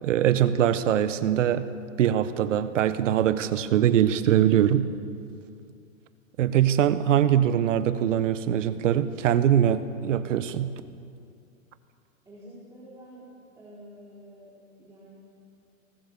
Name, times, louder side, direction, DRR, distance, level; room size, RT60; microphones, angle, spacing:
voice 1, 0.0-1.7 2.0-4.9 6.4-10.7, right 10 dB, 65° right, 12 dB, 1.4 m, -22 dB
voice 2, 12.3-13.3 13.6-15.2, equal, 5° right, -8 dB, 4.1 m, -48 dB
23.5 x 19.5 x 6.9 m, 2.4 s
hypercardioid pair, 150°, 41 cm